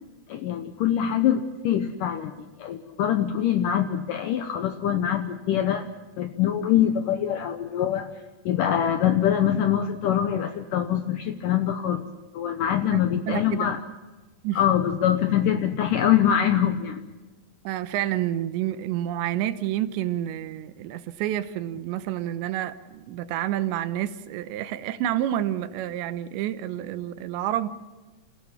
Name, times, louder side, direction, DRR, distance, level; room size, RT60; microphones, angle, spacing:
voice 1, 0.3-5.9 6.2-8.1 8.5-12.0 12.3-13.8 14.6-17.1, left 10 dB, 80° left, 1.9 m, -24 dB
voice 2, 12.9-13.7 14.4-14.6 17.6-27.7, right 12 dB, 85° right, 3.2 m, -29 dB
28.0 x 15.5 x 7.2 m
omnidirectional pair, 5.0 m